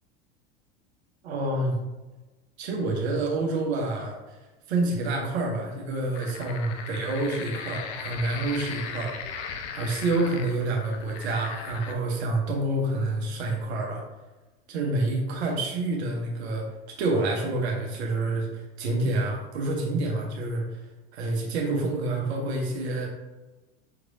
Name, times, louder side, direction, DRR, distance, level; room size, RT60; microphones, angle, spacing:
voice 1, 1.2-1.8 2.6-4.2 4.7-9.1 9.7-14.0 14.7-16.7 17.0-20.6 21.1-23.1, right 2 dB, 80° right, 0 dB, 1.1 m, -28 dB
sound 1, 6.1-11.9, left 6 dB, 55° left, 0.7 m, -38 dB
5.7 x 3.1 x 2.6 m, 1.1 s
hypercardioid pair, 100°, 32 cm